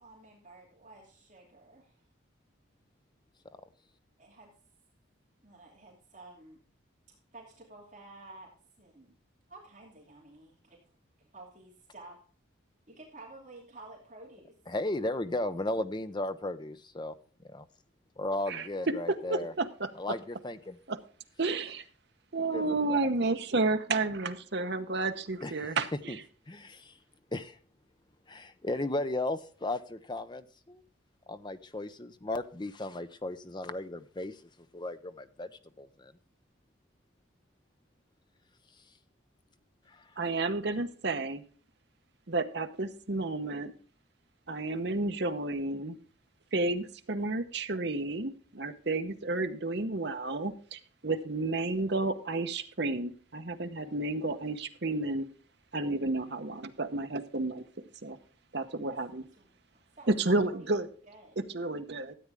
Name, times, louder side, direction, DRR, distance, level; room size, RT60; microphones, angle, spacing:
voice 1, 0.0-2.0 4.2-4.5 5.4-6.6 7.3-8.5 8.8-9.2 9.5-12.2 12.9-14.5 59.4-60.7 61.1-61.4, right 2 dB, 40° right, -2 dB, 2.7 m, -52 dB
voice 2, 14.7-17.2 17.5-17.7 18.2-19.5 20.0-20.8 22.5-23.0 25.4-25.7 26.1-26.2 26.5-27.0 27.3-27.6 28.3-30.8 31.3-36.1 39.9-40.1, left 2 dB, 20° left, 11 dB, 0.6 m, -35 dB
voice 3, 19.3-19.9 20.9-21.0 21.4-21.8 22.3-26.2 40.2-41.4 42.3-43.7 44.5-46.0 46.5-55.3 55.7-57.6 58.0-58.2 58.5-59.2 60.1-60.9 61.5-62.1, right 2 dB, 55° right, 8 dB, 0.9 m, -31 dB
13.5 x 8.7 x 3.5 m, 0.42 s
head